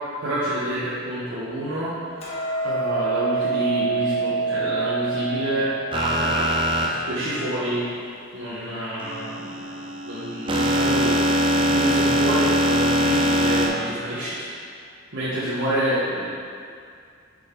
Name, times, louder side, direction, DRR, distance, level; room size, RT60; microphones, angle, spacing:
voice 1, 0.2-2.1 2.6-7.9 8.3-9.6 10.0-14.4 15.1-16.3, right 1 dB, 60° right, -11 dB, 1.2 m, -28 dB
Hammer, 2.2-8.4, right 4 dB, 30° left, 1.3 m, -28 dB
sound 1, 5.9-6.9 9.0-13.7, equal, 25° right, 0.5 m, -22 dB
7.1 x 5.2 x 3.8 m, 2.3 s
head